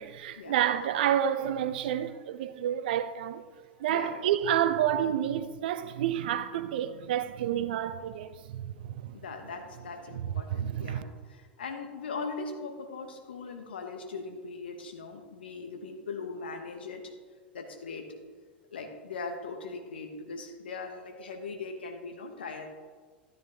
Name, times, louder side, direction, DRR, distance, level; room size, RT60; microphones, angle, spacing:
voice 1, 0.0-3.5 3.8-9.2 10.1-11.0, right 10 dB, 60° right, 0.6 m, -29 dB
voice 2, 9.1-11.0 11.3-17.1 17.5-18.1 18.7-22.7, left 4 dB, 75° left, 1.4 m, -40 dB
13.0 x 9.5 x 3.6 m
figure-of-eight pair, 85°, 6 cm